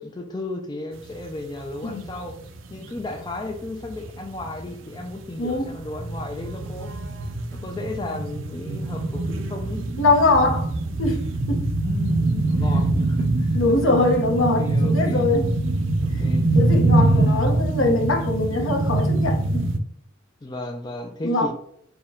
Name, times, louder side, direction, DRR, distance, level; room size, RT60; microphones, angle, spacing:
voice 1, 0.0-2.4 2.7-6.9 7.5-9.8 11.8-13.6 14.6-15.3 16.0-16.5 17.0-17.5 20.4-21.5, left 2 dB, 20° left, 3 dB, 0.3 m, -34 dB
sound 1, 1.2-1.3 1.5-19.8, right 2 dB, 70° right, 0.5 m, -24 dB
voice 2, 10.0-10.7 11.0-11.2 11.5-11.7 13.5-15.5 16.1-19.7 21.2-21.5, left 2 dB, 75° left, 3 dB, 0.8 m, -22 dB
4.3 x 2.2 x 3.5 m, 0.71 s
head